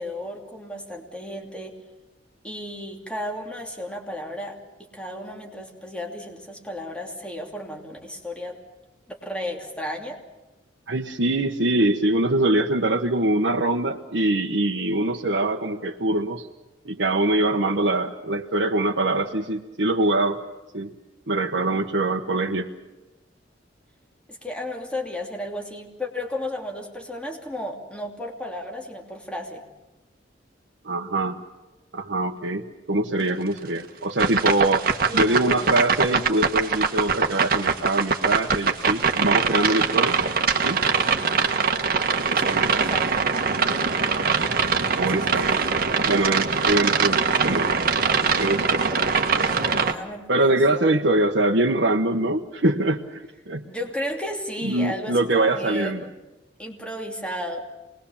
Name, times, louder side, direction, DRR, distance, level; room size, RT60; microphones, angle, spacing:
voice 1, 0.0-1.7 2.4-4.6 4.9-8.6 9.1-10.2 24.3-29.6 35.1-35.7 42.3-43.2 45.1-45.8 48.8-49.1 49.5-50.9 53.6-56.1 56.6-57.6, left 1 dB, 5° left, 1 dB, 2.9 m, -34 dB
voice 2, 10.9-16.5 16.8-20.4 20.7-20.9 21.3-22.7 30.8-31.4 31.9-34.9 35.1-40.2 40.6-40.8 42.3-42.6 44.9-45.6 46.0-47.7 48.4-48.9 50.3-53.6 54.6-56.0, right 2 dB, 70° right, -1 dB, 1.1 m, -23 dB
sound 1, 34.2-49.9, right 5 dB, 55° right, 1.5 m, -22 dB
26.5 x 20.5 x 7.2 m, 1.1 s
head